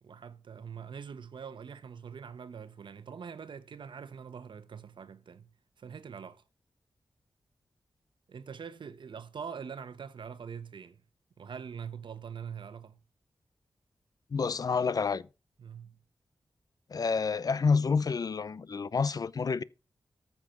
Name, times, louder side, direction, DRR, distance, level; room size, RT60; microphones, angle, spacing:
voice 1, 0.0-5.5 5.8-6.4 8.3-11.0 11.4-13.0 15.6-16.0, right 6 dB, 75° right, 1.1 m, -43 dB
voice 2, 14.3-15.3 16.9-19.6, left 5 dB, 50° left, 0.5 m, -28 dB
14.0 x 6.0 x 6.0 m
wide cardioid pair, 100°, 8 cm